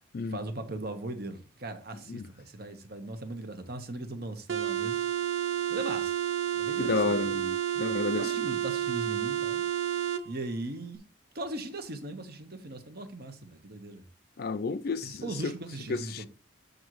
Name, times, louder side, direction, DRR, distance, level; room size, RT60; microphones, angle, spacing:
voice 1, 0.3-5.0 5.7-6.1 6.5-7.4 8.2-9.6 10.2-11.0 11.3-14.0 15.0-16.3, right 2 dB, 50° right, 1.1 m, -39 dB
sound 1, 4.5-10.2, right 11 dB, 80° right, 0.7 m, -30 dB
voice 2, 6.8-8.2 14.4-15.2 15.9-16.3, left 4 dB, 50° left, 0.4 m, -31 dB
8.1 x 3.9 x 4.7 m
head